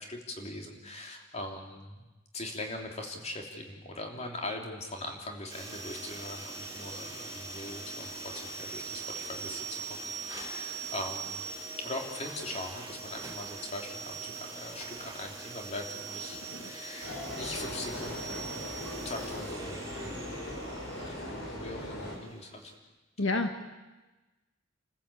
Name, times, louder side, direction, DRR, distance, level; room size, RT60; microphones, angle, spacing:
voice 1, 0.1-2.0 2.3-11.5 11.8-18.6 19.0-20.2 21.1-22.7, left 1 dB, 30° left, 2 dB, 3.2 m, -41 dB
sound 1, 5.5-22.8, right 4 dB, 15° right, 3.7 m, -42 dB
sound 2, 17.0-22.2, left 1 dB, 90° left, 4.5 m, -39 dB
voice 2, 23.2-23.6, left 2 dB, 75° left, 5 dB, 1.6 m, -29 dB
29.5 x 15.0 x 8.5 m, 1.1 s
head